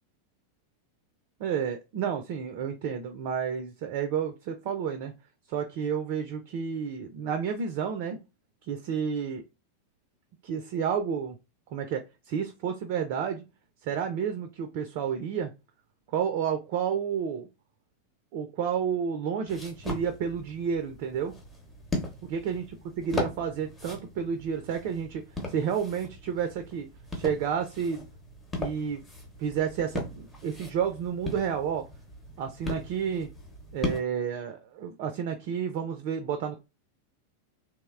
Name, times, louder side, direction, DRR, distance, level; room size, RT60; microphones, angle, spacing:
voice 1, 1.4-5.1 5.5-8.2 8.7-9.4 10.4-11.4 11.7-13.4 13.8-15.5 16.1-17.5 18.3-21.3 22.3-25.2 25.5-26.9 27.2-28.0 28.6-29.0 29.4-31.9 32.4-33.3 33.7-36.6, right 7 dB, 45° right, 6 dB, 0.3 m, -30 dB
sound 1, 19.5-34.0, left 2 dB, 15° left, 0.7 m, -38 dB
2.8 x 2.0 x 2.3 m, 0.26 s
figure-of-eight pair, 90°, 0 cm